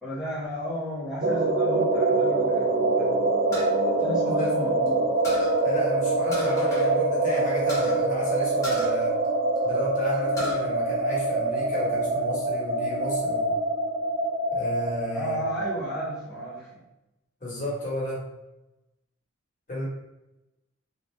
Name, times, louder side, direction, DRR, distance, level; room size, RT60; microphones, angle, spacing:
voice 1, 0.0-3.3 4.0-5.1 15.1-16.8, left 1 dB, ahead, -9 dB, 1.2 m, -34 dB
sound 1, 1.2-16.6, right 2 dB, 45° right, 0.4 m, -25 dB
sound 2, 3.5-4.9 5.2-5.6 6.3-6.9 7.2-7.3 7.7-8.0 8.6-9.8 10.1-10.6 11.1-11.8, equal, 15° left, 1.1 m, -36 dB
voice 2, 5.6-9.1 9.6-13.6 14.5-15.4 17.4-18.2 19.7-19.8, equal, 40° left, -6 dB, 1.2 m, -33 dB
3.3 x 2.6 x 3.3 m, 0.95 s
head